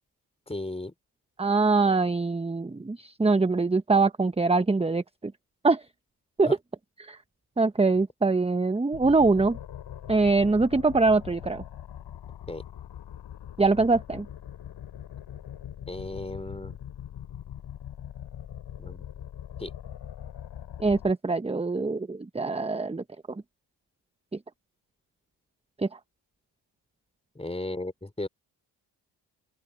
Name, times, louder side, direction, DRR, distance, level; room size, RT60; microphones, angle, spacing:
voice 1, 0.5-0.9 6.4-6.6 12.5-12.6 15.9-16.8 18.8-19.1 19.6-19.7 27.3-28.3, left 2 dB, 15° left, 4.1 m, -35 dB
voice 2, 1.4-5.3 5.6-5.8 6.4-6.6 7.0-7.2 7.6-9.6 10.1-11.6 13.6-14.3 20.8-23.4 25.8-25.9, right 3 dB, 15° right, 1.1 m, -23 dB
sound 1, 8.9-21.1, left 10 dB, 65° left, 7.6 m, -42 dB
open air
hypercardioid pair, 55°, 45 cm